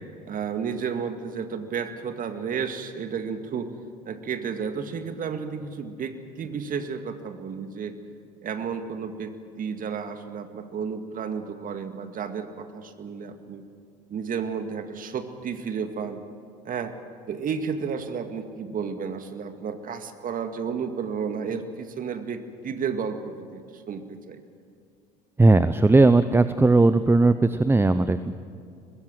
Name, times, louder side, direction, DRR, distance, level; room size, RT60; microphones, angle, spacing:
voice 1, 0.2-3.7 4.1-7.9 8.4-13.6 14.1-16.2 16.6-17.0 17.3-24.4, right 6 dB, 40° right, 7 dB, 2.1 m, -32 dB
voice 2, 25.4-28.3, right 3 dB, 10° right, 12 dB, 0.7 m, -18 dB
24.0 x 20.0 x 7.6 m, 2.4 s
hypercardioid pair, 65°, 21 cm